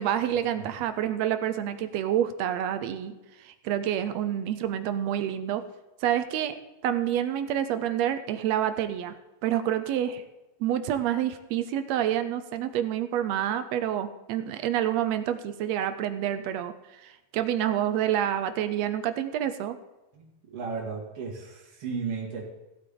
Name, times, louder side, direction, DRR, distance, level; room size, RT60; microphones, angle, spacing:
voice 1, 0.0-5.6 6.0-6.6 6.8-9.1 9.4-10.2 10.6-19.8, right 10 dB, 75° right, 10 dB, 1.7 m, -28 dB
voice 2, 20.1-22.4, right 5 dB, 50° right, -2 dB, 3.0 m, -35 dB
17.0 x 8.3 x 3.8 m, 1.0 s
omnidirectional pair, 3.4 m